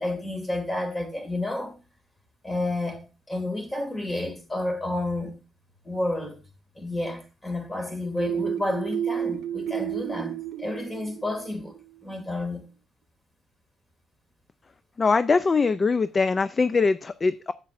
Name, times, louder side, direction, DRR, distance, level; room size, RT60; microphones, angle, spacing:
voice 1, 0.0-1.8 2.4-5.4 5.8-6.4 6.8-11.8 12.0-12.7, left 2 dB, 15° left, 2.3 m, -30 dB
sound 1, 8.2-11.8, right 9 dB, 80° right, 0.4 m, -31 dB
voice 2, 15.0-17.5, left 4 dB, 35° left, 0.4 m, -22 dB
10.0 x 7.5 x 2.5 m
cardioid pair, 90°, 0 cm